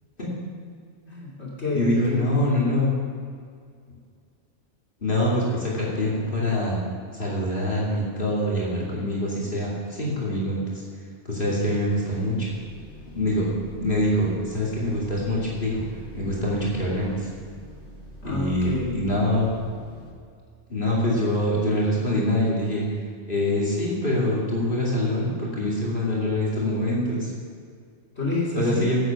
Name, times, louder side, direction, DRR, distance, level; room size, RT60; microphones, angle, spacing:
voice 1, 1.1-2.3 18.2-19.0 28.2-28.9, left 3 dB, 65° left, -5 dB, 3.1 m, -28 dB
voice 2, 1.7-2.9 5.0-6.8 7.1-10.8 11.3-12.5 13.1-15.8 16.1-17.3 18.2-19.5 20.7-22.9 23.3-27.3 28.6-29.0, left 1 dB, 50° left, -5 dB, 2.8 m, -24 dB
sound 1, 11.9-20.1, right 1 dB, 90° left, 2.1 m, -43 dB
10.0 x 8.2 x 7.0 m, 2.2 s
omnidirectional pair, 1.2 m